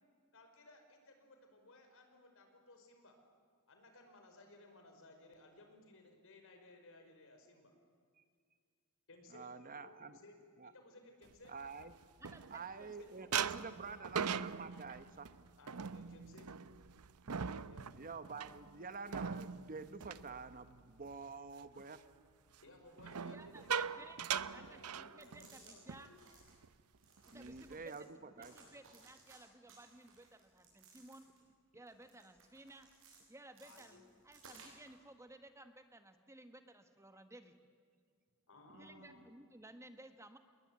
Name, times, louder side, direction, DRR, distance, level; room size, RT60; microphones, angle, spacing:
voice 1, 0.3-3.2 3.7-7.7 9.1-10.4 10.6-11.5 12.7-13.1 13.8-14.0 15.6-16.5 17.6-17.9 22.6-23.9 24.3-26.2 33.6-34.0 38.5-39.3, left 2 dB, 65° left, 5 dB, 5.3 m, -60 dB
voice 2, 9.3-10.2 10.6-10.7 11.5-11.9 12.5-15.3 17.9-22.0 27.3-28.6 38.7-39.3, right 4 dB, 40° right, 11 dB, 1.2 m, -48 dB
sound 1, 11.4-12.9 13.3-21.1 21.5-21.8 23.0-25.6 25.9-26.1 26.4-26.7 27.2-27.8, right 7 dB, 80° right, 0.8 m, -41 dB
voice 3, 12.2-12.9 23.1-24.2 24.5-26.1 27.2-31.3 31.7-32.9 33.3-37.5 38.8-40.4, right 1 dB, 15° right, 8 dB, 1.5 m, -57 dB
sound 2, 25.0-25.7 26.1-26.5 27.0-28.0 28.4-29.4 29.7-31.5 31.9-33.2 33.5-35.0, right 4 dB, 60° right, 7.3 m, -61 dB
28.5 x 21.0 x 9.7 m, 2.1 s
head